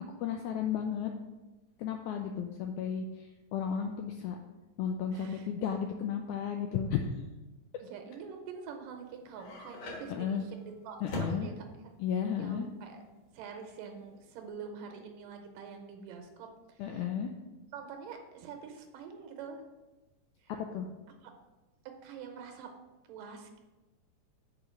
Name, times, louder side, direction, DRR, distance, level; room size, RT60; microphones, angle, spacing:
voice 1, 0.2-1.1 1.8-3.3 3.5-4.4 4.8-7.0 10.1-10.4 11.0-11.5 12.0-12.7 16.8-17.3 20.5-20.9, left 8 dB, 85° left, 4 dB, 1.7 m, -33 dB
voice 2, 5.1-5.7 7.8-13.0 13.3-17.1 17.7-19.6 20.4-20.5 21.2-21.3 22.0-22.7 23.1-23.6, right 6 dB, 80° right, 4 dB, 2.4 m, -46 dB
sound 1, 8.9-14.5, left 1 dB, 60° left, 2.4 m, -43 dB
5.5 x 4.7 x 6.4 m, 1.1 s
omnidirectional pair, 3.9 m